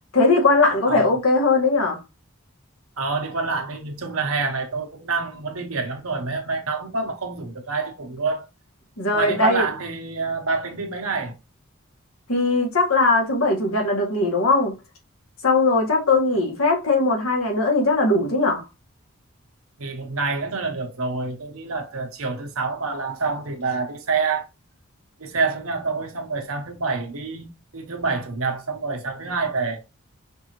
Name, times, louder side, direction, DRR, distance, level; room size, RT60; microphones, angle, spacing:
voice 1, 0.1-2.0 9.0-9.6 12.3-14.7 15.4-18.6, left 3 dB, 90° left, 1.6 m, -19 dB
voice 2, 0.9-1.2 3.0-8.5 9.1-11.4 19.8-24.5 25.2-29.8, right 4 dB, 90° right, 1.0 m, -27 dB
5.3 x 2.7 x 3.0 m
head